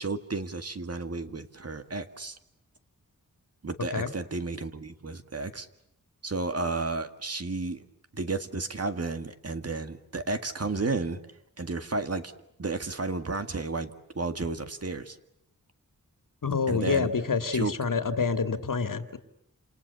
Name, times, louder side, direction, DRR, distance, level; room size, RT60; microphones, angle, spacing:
voice 1, 0.0-2.4 3.6-5.7 6.2-7.9 8.1-11.2 11.6-12.3 12.6-15.2 16.7-17.1 17.5-17.7, right 3 dB, 45° right, 8 dB, 2.0 m, -32 dB
voice 2, 16.4-19.2, left 5 dB, 70° left, 9 dB, 2.3 m, -27 dB
29.5 x 28.0 x 7.0 m, 0.79 s
wide cardioid pair, 105°, 34 cm